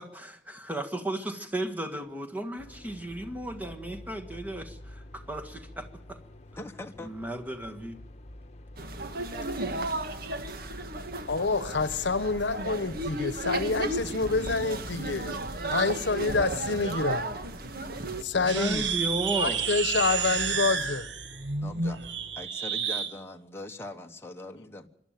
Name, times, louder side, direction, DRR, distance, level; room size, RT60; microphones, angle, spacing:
voice 1, 0.0-6.2 7.0-8.0 18.3-19.6, right 1 dB, 10° right, 5 dB, 1.7 m, -34 dB
sound 1, 2.6-22.5, left 1 dB, 40° left, 1.2 m, -48 dB
voice 2, 6.6-7.1 21.6-22.1 22.4-24.9, left 1 dB, 15° left, 4 dB, 1.1 m, -41 dB
sound 2, 8.8-18.2, right 2 dB, 55° right, 1.6 m, -34 dB
voice 3, 11.3-15.4 15.7-17.2 18.2-18.9 19.4-21.1, left 4 dB, 75° left, 15 dB, 1.0 m, -27 dB
sound 3, 18.4-23.1, right 6 dB, 85° right, 1.4 m, -30 dB
25.5 x 11.5 x 9.1 m, 0.70 s
head